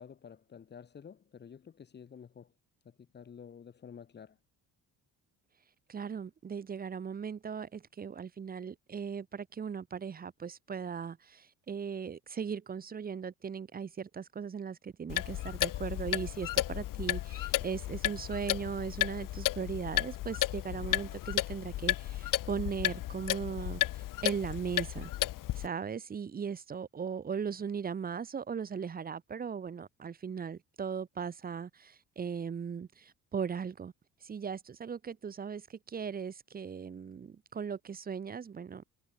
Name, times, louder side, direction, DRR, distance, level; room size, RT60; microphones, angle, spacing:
voice 1, 0.0-2.5 2.9-4.4, left 7 dB, 30° left, 5.2 m, -50 dB
voice 2, 5.9-25.1 25.5-33.9 34.2-38.8, right 6 dB, 25° right, 1.8 m, -38 dB
Clock, 15.1-25.7, left 15 dB, 70° left, 3.2 m, -33 dB
cardioid pair, 180°, 34 cm